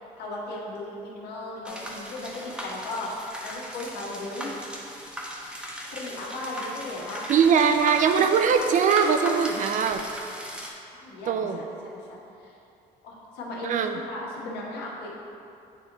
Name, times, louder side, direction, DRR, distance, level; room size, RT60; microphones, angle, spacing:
voice 1, 0.2-4.5 5.9-7.2 8.2-8.3 9.5-9.6 10.9-12.5 13.0-15.2, left 2 dB, 75° left, -4 dB, 1.3 m, -36 dB
sound 1, 1.6-10.7, equal, 5° right, 0.8 m, -38 dB
voice 2, 7.3-10.0 11.3-11.7 13.6-14.0, right 6 dB, 50° right, 7 dB, 0.4 m, -21 dB
8.6 x 3.1 x 3.8 m, 2.6 s
cardioid pair, 110°, 17 cm